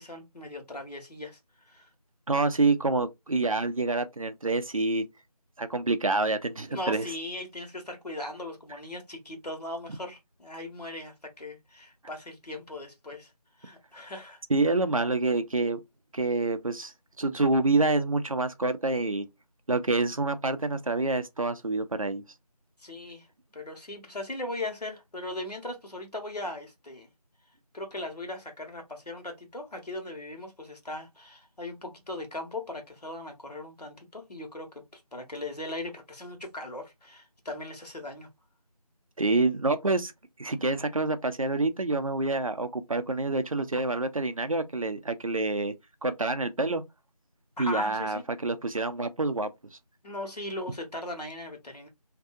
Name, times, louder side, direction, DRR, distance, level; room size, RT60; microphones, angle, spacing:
voice 1, 0.0-1.4 1.7-1.9 6.7-13.3 13.6-14.4 22.8-23.3 23.5-27.1 27.7-38.3 47.6-48.2 50.0-51.9, left 1 dB, 80° left, 1.2 m, -38 dB
voice 2, 2.3-5.1 5.6-7.0 14.5-15.8 16.1-19.3 19.7-22.2 39.2-40.1 40.4-45.7 46.0-46.8 47.6-49.5, right 3 dB, 60° right, 0.4 m, -27 dB
2.6 x 2.3 x 2.5 m
figure-of-eight pair, 180°, 20 cm